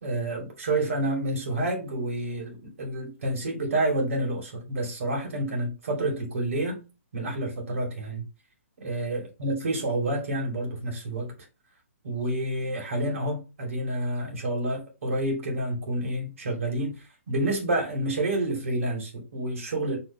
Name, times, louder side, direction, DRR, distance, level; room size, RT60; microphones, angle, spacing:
voice 1, 0.0-6.8 7.1-8.2 8.8-11.3 12.0-20.0, right 1 dB, 70° right, 2.6 m, -29 dB
5.1 x 3.5 x 2.9 m
hypercardioid pair, 145°, 8 cm